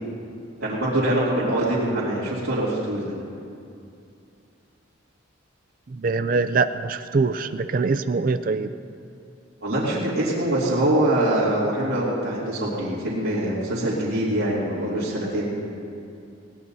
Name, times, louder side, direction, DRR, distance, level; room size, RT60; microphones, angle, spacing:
voice 1, 0.6-3.2 9.6-15.5, right 1 dB, 75° right, -11 dB, 2.8 m, -24 dB
voice 2, 6.0-8.7, right 4 dB, 45° right, 11 dB, 0.4 m, -23 dB
21.0 x 17.5 x 2.8 m, 2.6 s
head